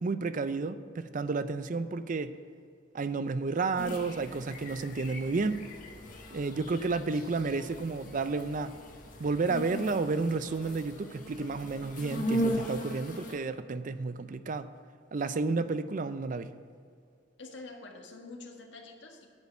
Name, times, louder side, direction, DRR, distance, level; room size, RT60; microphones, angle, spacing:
voice 1, 0.0-2.3 2.9-5.7 6.3-8.7 9.2-14.7 15.1-16.5, right 3 dB, 45° right, 12 dB, 0.5 m, -31 dB
sound 1, 3.8-13.4, equal, 45° left, 1.5 m, -38 dB
voice 2, 17.4-19.3, left 3 dB, 75° left, 2 dB, 1.7 m, -46 dB
10.5 x 5.7 x 7.9 m, 2.3 s
head